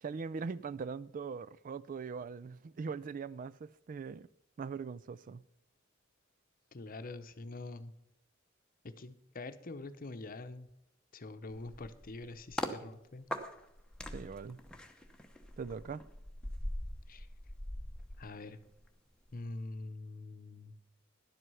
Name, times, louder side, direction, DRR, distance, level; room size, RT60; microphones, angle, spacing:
voice 1, 0.0-4.3 4.6-5.4 14.1-14.6 15.6-16.0, right 5 dB, 40° right, 0.3 m, -41 dB
voice 2, 6.7-7.9 8.8-10.7 11.1-13.3 17.1-17.3 18.2-18.6 19.3-20.8, left 2 dB, 45° left, 0.8 m, -45 dB
sound 1, 11.5-12.8 13.3-18.9 19.2-19.5, left 1 dB, 5° left, 0.9 m, -42 dB
11.0 x 7.9 x 5.6 m
head